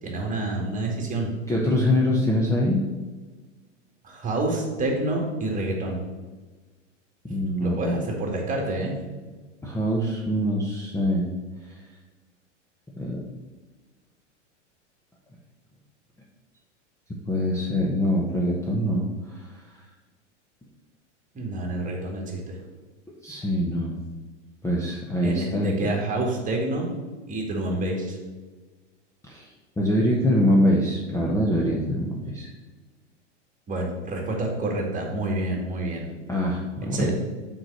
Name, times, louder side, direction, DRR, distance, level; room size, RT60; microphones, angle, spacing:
voice 1, 0.0-1.3 4.0-6.0 7.6-8.9 21.3-22.6 25.2-26.9 27.3-28.2 33.7-36.1 36.9-37.1, right 2 dB, 20° right, 0 dB, 2.1 m, -28 dB
voice 2, 1.5-2.8 7.2-7.9 9.6-11.3 11.6-11.7 13.0-13.2 17.3-19.5 23.2-24.0 24.6-25.7 29.3-29.5 29.8-32.5 36.3-37.1, equal, 10° left, -2 dB, 1.0 m, -24 dB
6.1 x 4.7 x 6.3 m, 1.3 s
hypercardioid pair, 110°, 37 cm